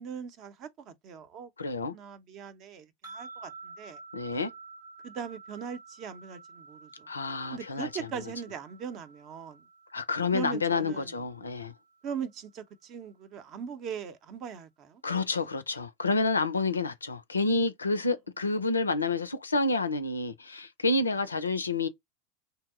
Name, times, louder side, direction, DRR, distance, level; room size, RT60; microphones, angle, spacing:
voice 1, 0.0-1.5 1.9-4.0 5.0-7.1 7.5-9.6 10.3-11.2 12.0-15.0, right 7 dB, 45° right, 0.6 m, -40 dB
voice 2, 1.6-1.9 4.1-4.5 7.1-8.1 9.9-11.7 15.0-21.9, left 3 dB, 85° left, 0.4 m, -29 dB
sound 1, 3.0-12.3, right 3 dB, 90° right, 1.4 m, -50 dB
2.7 x 2.0 x 3.5 m
figure-of-eight pair, 85°, 0 cm